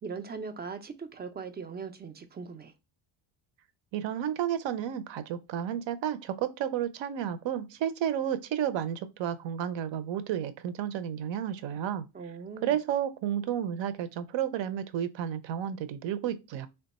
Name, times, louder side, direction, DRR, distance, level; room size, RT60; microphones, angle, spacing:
voice 1, 0.0-2.7 12.1-12.8, right 5 dB, 25° right, 0.3 m, -40 dB
voice 2, 3.9-12.1 12.6-16.7, right 10 dB, 65° right, 0.6 m, -32 dB
3.3 x 2.3 x 4.0 m
cardioid pair, 130°, 49 cm